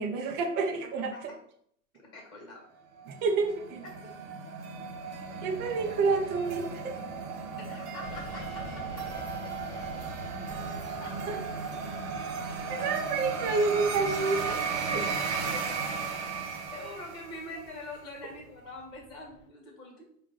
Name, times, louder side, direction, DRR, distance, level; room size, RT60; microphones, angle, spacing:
voice 1, 0.0-1.3 3.1-3.8 5.4-7.0 11.3-11.4 12.7-14.6 14.9-15.0, right 4 dB, 25° right, 3 dB, 0.5 m, -29 dB
voice 2, 2.0-2.6 3.8-4.0 7.5-8.8 11.0-11.1 15.4-15.7 16.7-20.1, left 2 dB, 10° left, -1 dB, 1.5 m, -44 dB
sound 1, 3.0-17.6, right 5 dB, 50° right, 1.0 m, -35 dB
sound 2, 8.0-19.5, left 2 dB, 35° left, 0.6 m, -50 dB
4.5 x 2.4 x 3.7 m, 0.66 s
hypercardioid pair, 120°, 44 cm